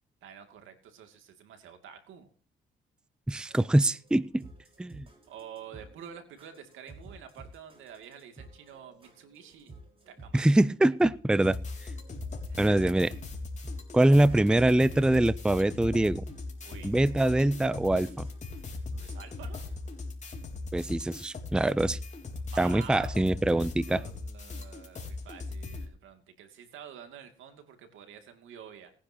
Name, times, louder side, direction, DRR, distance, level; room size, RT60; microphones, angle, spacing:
voice 1, 0.2-2.3 5.3-9.7 10.1-10.4 12.5-12.9 16.6-16.9 19.0-19.6 22.4-28.9, right 8 dB, 85° right, 6 dB, 2.6 m, -48 dB
voice 2, 3.3-4.4 4.8-5.0 10.3-11.6 12.6-13.1 13.9-16.2 16.8-18.3 20.7-22.0 22.6-24.0, right 1 dB, 5° right, 18 dB, 0.5 m, -24 dB
sound 1, 3.5-20.1, right 2 dB, 25° right, 5.1 m, -53 dB
sound 2, 11.4-25.8, left 3 dB, 35° left, 3.8 m, -39 dB
20.0 x 10.0 x 2.9 m, 0.43 s
cardioid pair, 90°, 20 cm